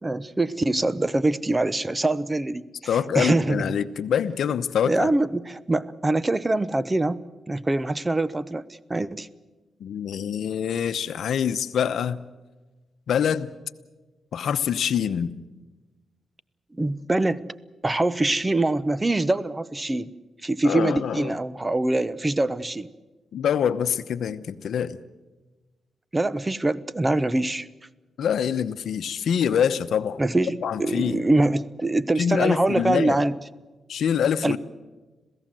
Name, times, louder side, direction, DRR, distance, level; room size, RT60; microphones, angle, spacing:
voice 1, 0.0-2.7 3.1-3.8 4.9-8.6 8.9-9.3 16.8-17.5 17.8-20.1 20.4-22.9 26.1-27.7 30.2-33.3 34.4-34.6, right 2 dB, 20° right, 18 dB, 0.8 m, -24 dB
voice 2, 2.9-5.1 9.8-12.2 13.1-13.5 14.3-15.3 20.6-21.4 23.3-25.0 28.2-30.2 30.6-31.2 32.2-33.2 33.9-34.6, left 8 dB, 75° left, 12 dB, 0.9 m, -25 dB
27.0 x 17.0 x 7.7 m, 1.2 s
cardioid pair, 75°, 0 cm